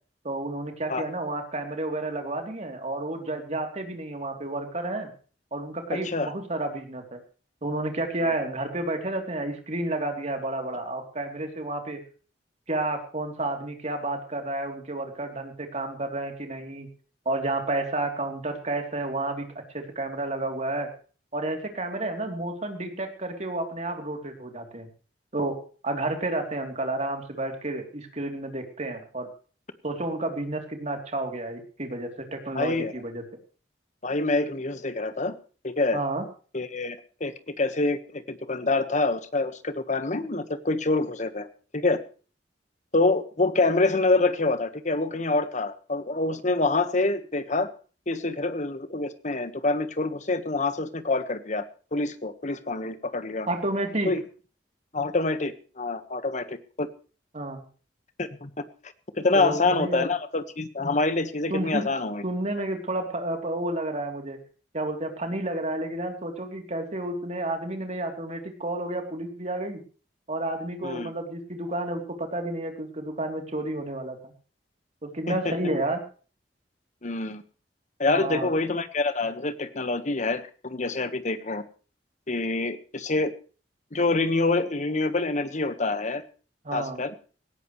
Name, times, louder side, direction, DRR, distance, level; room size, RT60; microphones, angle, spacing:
voice 1, 0.2-5.1 5.5-7.2 7.6-12.0 12.7-16.9 17.2-19.5 19.7-20.9 21.3-24.9 25.3-25.6 25.8-29.3 29.8-33.2 35.9-36.2 53.5-54.1 57.3-57.6 59.3-60.1 61.5-61.9 62.2-64.4 64.7-69.8 70.3-74.3 75.0-76.0 78.1-78.5 86.6-87.0, right 2 dB, 40° right, 4 dB, 3.2 m, -31 dB
voice 2, 5.9-6.3 32.5-32.9 34.0-35.3 35.6-36.0 36.5-41.5 41.7-42.0 42.9-47.7 48.1-51.6 51.9-53.5 54.0-54.2 54.9-56.9 58.2-58.6 59.2-62.2 70.8-71.1 75.3-75.6 77.0-77.4 78.0-81.6 82.3-83.3 83.9-86.2 86.7-87.1, left 3 dB, 45° left, 11 dB, 1.4 m, -26 dB
18.5 x 16.5 x 3.2 m, 0.39 s
head